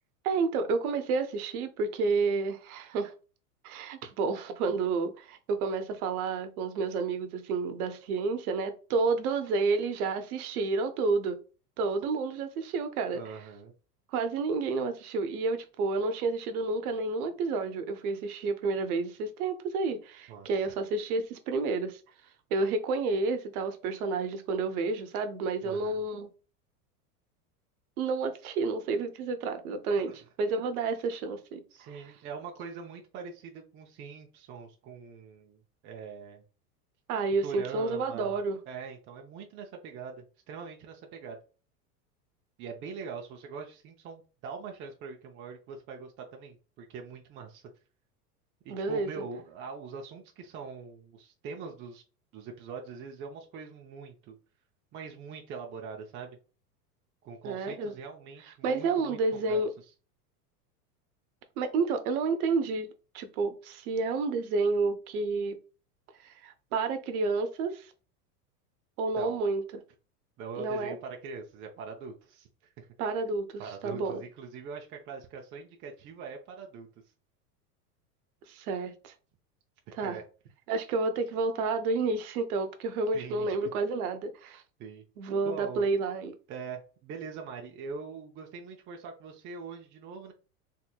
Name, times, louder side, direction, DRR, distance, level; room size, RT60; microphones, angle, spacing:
voice 1, 0.2-3.1 3.6-11.4 11.8-13.4 14.1-22.0 22.5-26.3 28.0-31.9 37.1-38.6 48.7-49.1 57.4-57.9 58.6-59.7 61.6-62.9 63.1-65.6 66.2-67.9 69.0-69.6 70.6-71.0 73.0-74.2 78.5-79.1 80.0-80.2 80.7-84.6 85.2-86.4, right 4 dB, 65° right, 0.8 m, -30 dB
voice 2, 13.1-13.7 20.3-20.5 25.6-26.0 30.0-30.2 31.7-36.4 37.4-38.4 38.7-41.4 42.6-47.6 48.6-52.0 52.3-54.4 54.9-56.4 57.2-59.6 69.1-69.4 70.4-72.9 73.6-76.9 79.9-80.2 83.1-83.6 84.8-85.0 85.4-85.9 86.5-90.3, right 5 dB, 25° right, 0.5 m, -42 dB
3.4 x 2.8 x 2.2 m
hypercardioid pair, 110°, 47 cm